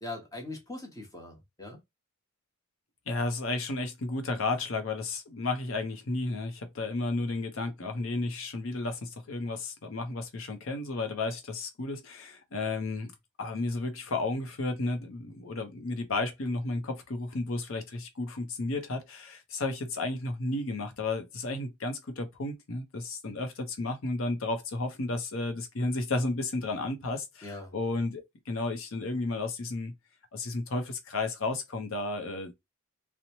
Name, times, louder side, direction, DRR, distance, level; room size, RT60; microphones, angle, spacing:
voice 1, 0.0-1.8 27.4-27.7, left 2 dB, 15° left, 0.8 m, -41 dB
voice 2, 3.1-13.1 13.4-29.9 30.3-32.5, left 2 dB, 65° left, 0.6 m, -33 dB
2.7 x 2.1 x 2.9 m
head